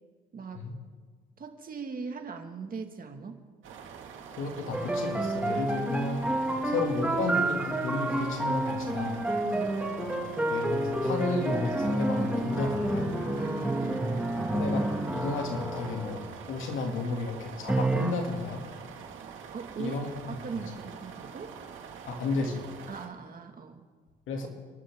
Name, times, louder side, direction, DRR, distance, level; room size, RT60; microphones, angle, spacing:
voice 1, 0.3-0.7 1.4-3.4 9.4-9.8 13.3-14.1 19.5-21.5 22.9-23.8, right 5 dB, 45° right, 4 dB, 2.1 m, -40 dB
sound 1, 3.6-23.1, right 7 dB, 80° right, 2.2 m, -45 dB
voice 2, 4.4-6.3 6.6-9.3 10.5-13.2 14.5-14.9 15.1-18.7 19.8-20.3 22.1-22.6 24.3-24.5, left 3 dB, 85° left, 2 dB, 2.7 m, -32 dB
sound 2, 4.7-16.3 17.7-18.1, right 1 dB, 5° right, 2.2 m, -29 dB
29.5 x 12.0 x 3.8 m, 1.5 s
cardioid pair, 90°, 20 cm